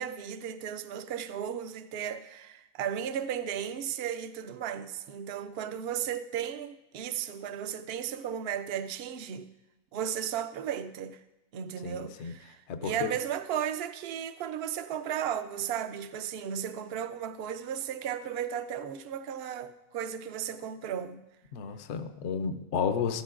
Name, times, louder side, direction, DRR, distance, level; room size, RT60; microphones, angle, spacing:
voice 1, 0.0-9.5 9.9-11.2 11.5-21.2, right 9 dB, 60° right, 0.7 m, -35 dB
voice 2, 11.8-12.3 12.7-13.1 21.5-23.2, left 6 dB, 60° left, 0.9 m, -32 dB
14.0 x 13.0 x 2.5 m
omnidirectional pair, 1.5 m